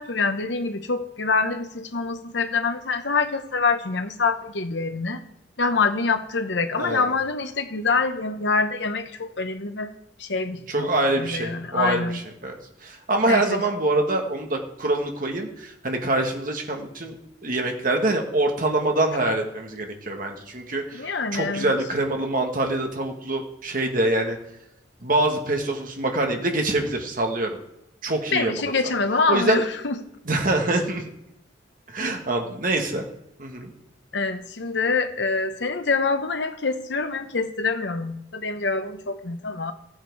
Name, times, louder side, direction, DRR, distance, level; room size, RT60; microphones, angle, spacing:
voice 1, 0.0-5.2 5.6-9.9 10.2-10.9 11.2-12.2 13.3-13.6 20.9-21.7 28.3-30.0 34.1-39.7, left 4 dB, 70° left, 8 dB, 1.0 m, -25 dB
voice 2, 6.8-7.1 10.7-17.2 17.4-24.4 25.0-27.6 28.0-28.5 29.3-29.6 30.2-31.1 31.9-33.1 33.4-33.7, right 2 dB, 50° right, 3 dB, 1.7 m, -25 dB
14.5 x 8.9 x 4.8 m, 0.83 s
head